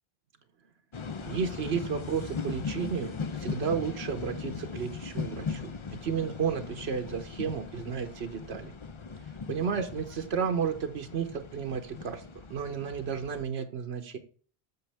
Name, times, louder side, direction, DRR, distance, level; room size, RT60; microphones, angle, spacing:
sound 1, 0.9-13.4, left 5 dB, 35° left, 0.5 m, -39 dB
voice 1, 1.3-5.7 6.0-8.7 9.5-12.2 12.5-14.2, right 6 dB, 85° right, 6 dB, 1.1 m, -32 dB
7.9 x 6.4 x 3.4 m, 0.42 s
omnidirectional pair, 1.1 m